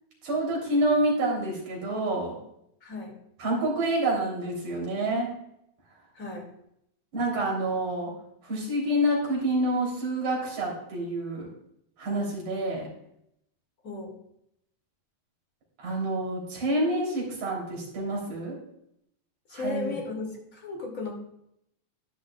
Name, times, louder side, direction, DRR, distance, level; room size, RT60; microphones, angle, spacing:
voice 1, 0.2-2.4 3.4-5.3 7.1-8.1 8.5-11.5 12.0-12.9 15.8-18.6 19.5-19.9, right 1 dB, 85° right, -2 dB, 5.0 m, -28 dB
voice 2, 2.8-3.1 6.1-6.4 13.8-14.1 19.5-21.1, left 3 dB, 30° left, 0 dB, 2.7 m, -35 dB
13.0 x 11.0 x 2.4 m, 0.76 s
omnidirectional pair, 3.3 m